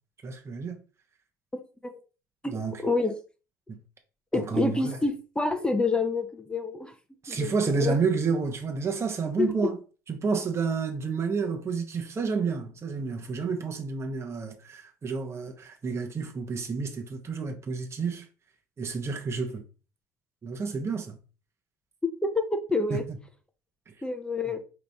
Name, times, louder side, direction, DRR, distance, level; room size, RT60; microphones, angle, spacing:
voice 1, 0.2-0.8 2.4-2.8 3.7-3.8 4.3-5.0 7.2-9.8 10.1-18.3 18.8-19.6 20.4-21.2 22.9-23.2 23.9-24.0, right 5 dB, 25° right, 0.9 m, -30 dB
voice 2, 1.5-2.0 2.4-2.5 2.8-3.2 4.3-6.9 7.3-8.0 9.4-9.5 22.3-23.0 24.0-24.6, left 3 dB, 10° left, 0.7 m, -28 dB
5.0 x 3.0 x 3.5 m
figure-of-eight pair, 60°, 10 cm